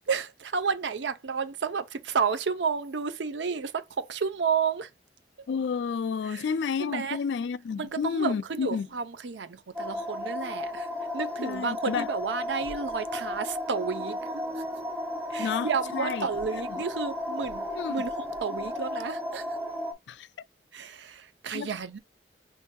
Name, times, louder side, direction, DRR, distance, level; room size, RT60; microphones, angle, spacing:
voice 1, 0.1-4.9 6.2-6.4 6.8-7.2 7.8-10.9 11.1-14.6 15.3-19.5 20.7-22.0, right 5 dB, 90° right, 0.6 m, -31 dB
voice 2, 5.5-8.9 11.4-12.1 15.4-16.3 16.7-16.8 17.7-17.9 20.1-20.3 21.5-21.7, left 6 dB, 80° left, 0.3 m, -30 dB
sound 1, 9.8-19.9, left 1 dB, 10° right, 0.7 m, -34 dB
5.5 x 2.6 x 2.3 m
head